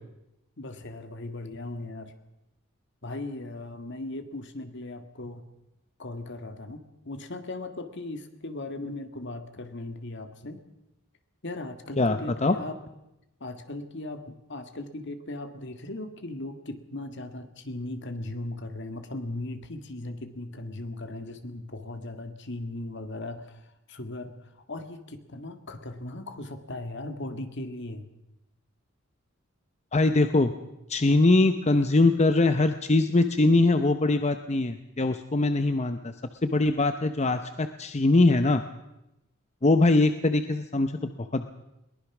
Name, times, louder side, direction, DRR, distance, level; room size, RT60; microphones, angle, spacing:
voice 1, 0.6-2.1 3.0-5.4 6.0-10.6 11.4-12.8 13.4-24.3 24.7-28.1, left 2 dB, 60° left, 8 dB, 2.0 m, -38 dB
voice 2, 12.0-12.6 29.9-30.5 30.9-36.1 36.4-38.6 39.6-41.5, left 2 dB, 35° left, 9 dB, 0.8 m, -22 dB
22.0 x 19.5 x 6.1 m, 0.91 s
head